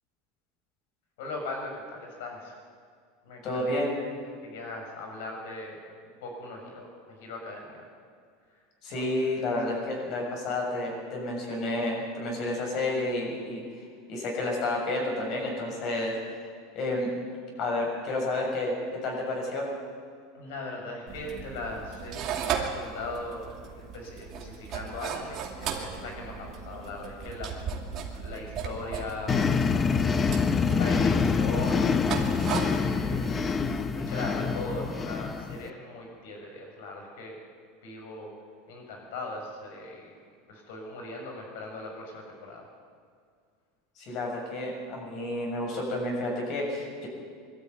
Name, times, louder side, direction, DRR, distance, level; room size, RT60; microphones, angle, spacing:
voice 1, 1.2-2.5 3.2-3.6 4.0-4.1 4.4-7.8 8.9-9.0 9.6-9.7 20.3-27.6 28.1-29.3 29.8-30.2 30.7-32.0 32.7-33.6 33.9-37.4 37.8-38.3 38.7-40.2 40.5-42.7, left 2 dB, 75° left, 1 dB, 6.7 m, -39 dB
voice 2, 3.4-3.9 8.8-13.6 14.1-16.1 16.7-17.2 17.6-18.8 19.0-19.7 44.0-47.1, left 2 dB, 45° left, -1 dB, 6.9 m, -30 dB
sound 1, 21.1-33.8, right 7 dB, 40° right, 2.5 m, -37 dB
sound 2, 29.3-35.7, left 5 dB, 20° left, 0.8 m, -26 dB
21.0 x 13.0 x 9.5 m, 2.1 s
supercardioid pair, 140°, 0 cm